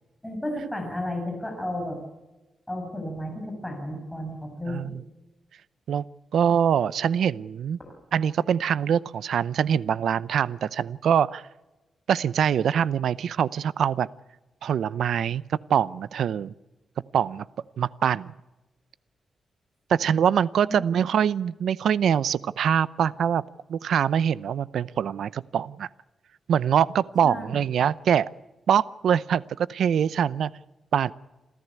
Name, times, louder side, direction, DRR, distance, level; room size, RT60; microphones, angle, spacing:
voice 1, 0.2-2.0 2.7-4.9 20.6-20.8 27.2-27.6, left 1 dB, 5° left, 2 dB, 6.2 m, -33 dB
voice 2, 4.7-5.0 5.9-6.0 6.3-7.8 8.1-11.4 12.1-14.1 14.6-16.5 17.1-17.5 17.8-18.3 19.9-23.4 23.7-25.9 26.5-28.3 28.7-30.5 30.9-31.1, right 8 dB, 80° right, 18 dB, 0.6 m, -24 dB
27.5 x 14.0 x 8.2 m, 1.1 s
wide cardioid pair, 130°, 0 cm